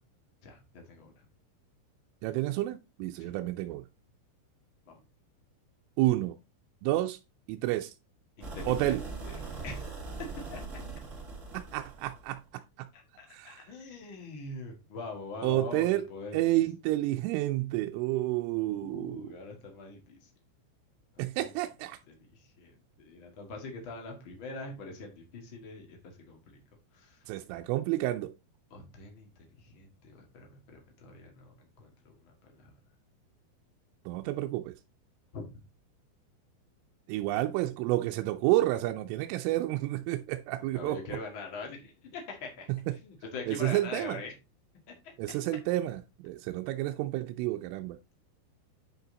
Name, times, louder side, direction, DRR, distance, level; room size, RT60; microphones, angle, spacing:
voice 1, 0.4-1.2 3.2-3.3 4.9-5.0 8.4-9.0 9.2-9.4 9.6-9.9 10.5-10.6 13.2-16.6 18.7-20.3 21.4-21.5 22.3-26.6 26.9-27.2 28.7-29.3 29.6-32.3 32.6-32.7 35.3-35.5 40.6-42.7 43.0-44.3 44.9-45.1, left 3 dB, 75° left, 1.1 m, -43 dB
voice 2, 2.2-3.9 6.0-6.4 6.8-7.2 7.5-7.9 8.7-9.0 11.5-12.9 13.3-13.7 15.4-16.1 16.3-19.3 21.2-22.0 27.3-28.3 34.1-34.7 37.1-41.0 42.7-42.9 43.5-44.2 45.2-48.0, right 16 dB, 85° right, 3.0 m, -30 dB
sound 1, 8.4-12.4, right 3 dB, 45° right, 0.9 m, -41 dB
9.2 x 5.5 x 3.9 m
omnidirectional pair, 5.9 m